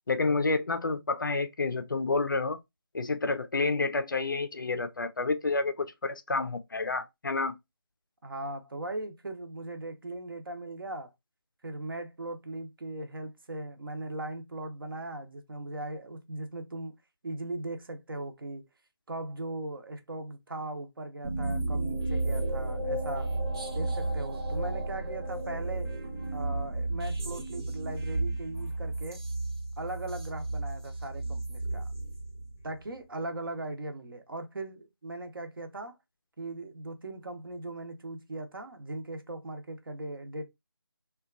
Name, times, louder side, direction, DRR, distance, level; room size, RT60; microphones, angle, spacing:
voice 1, 0.1-2.6 2.9-7.5, left 3 dB, 50° left, 0.4 m, -29 dB
voice 2, 8.2-11.1 11.6-17.0 17.2-18.6 19.1-23.3 23.7-25.9 26.3-29.2 29.8-31.9 32.6-36.0 36.4-40.5, right 2 dB, 60° right, 0.6 m, -39 dB
sound 1, 21.2-32.8, right 2 dB, 75° right, 1.0 m, -33 dB
2.8 x 2.2 x 2.3 m
figure-of-eight pair, 165°, 13 cm